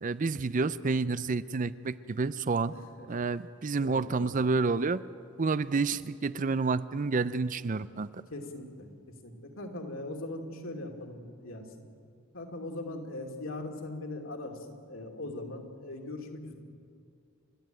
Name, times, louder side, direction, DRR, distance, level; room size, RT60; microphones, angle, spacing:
voice 1, 0.0-2.7 3.1-5.0 5.4-8.1, right 4 dB, 35° right, 15 dB, 0.5 m, -29 dB
voice 2, 2.7-3.1 3.8-4.4 8.3-11.7 12.3-16.5, left 2 dB, 70° left, 3 dB, 2.7 m, -40 dB
30.0 x 13.0 x 9.1 m, 2.5 s
head